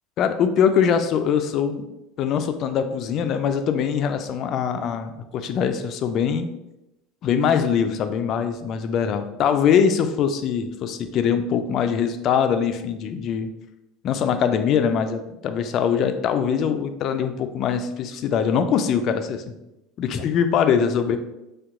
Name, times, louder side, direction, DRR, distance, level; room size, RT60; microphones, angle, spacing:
voice 1, 0.2-1.8 2.2-6.5 7.2-13.5 14.0-19.6 20.0-21.2, left 7 dB, 50° left, 9 dB, 0.3 m, -22 dB
2.7 x 2.2 x 3.6 m, 0.92 s
supercardioid pair, 95°, 0 cm